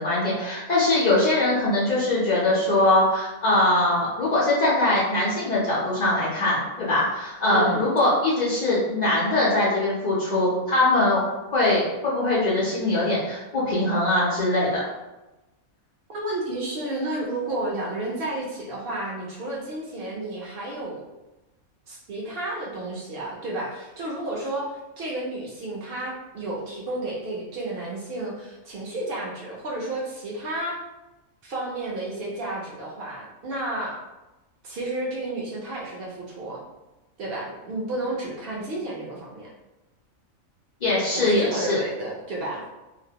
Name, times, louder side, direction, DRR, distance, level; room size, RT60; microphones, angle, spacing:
voice 1, 0.0-11.2 11.5-14.8 40.8-41.8, left 2 dB, 85° left, -7 dB, 0.3 m, -22 dB
voice 2, 7.5-7.8 16.1-21.0 21.9-24.7 25.0-30.8 31.4-34.0 34.6-36.6 37.2-39.5 41.1-42.6, right 2 dB, 60° right, -3 dB, 0.6 m, -31 dB
2.5 x 2.0 x 2.7 m, 1.0 s
omnidirectional pair, 1.4 m